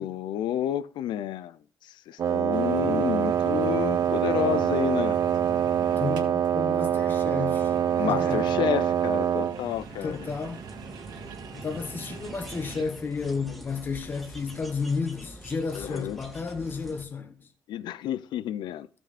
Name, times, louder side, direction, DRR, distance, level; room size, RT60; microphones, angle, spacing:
voice 1, 0.0-1.6 1.8-5.2 8.0-10.2 15.7-16.2 17.7-18.9, left 11 dB, 85° left, 0.5 m, -30 dB
Wind instrument woodwind instrument, 2.2-9.6, right 9 dB, 45° right, 0.8 m, -25 dB
sound 1, 2.5-12.8, right 5 dB, 70° right, 1.8 m, -42 dB
voice 2, 6.0-8.6 10.0-10.7 11.5-17.5, left 5 dB, 25° left, 1.1 m, -32 dB
sound 2, 9.5-17.0, right 1 dB, ahead, 1.7 m, -46 dB
15.0 x 6.3 x 4.2 m
cardioid pair, 175°, 8 cm